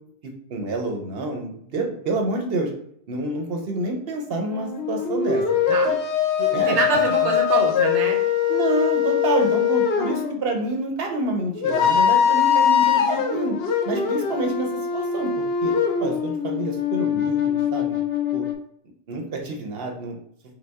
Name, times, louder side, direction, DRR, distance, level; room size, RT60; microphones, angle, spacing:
voice 1, 0.5-2.7 3.1-5.4 5.8-6.0 6.5-6.8 7.2-7.3 8.5-13.6 13.8-15.7 16.0-18.0 18.3-18.4 19.1-20.2, right 2 dB, 60° right, 2 dB, 1.1 m, -28 dB
sound 1, 4.4-10.4 11.5-18.5, left 8 dB, 65° left, 0.9 m, -22 dB
voice 2, 6.4-8.2, right 4 dB, 85° right, 2 dB, 1.1 m, -25 dB
5.2 x 2.4 x 3.5 m, 0.68 s
omnidirectional pair, 1.1 m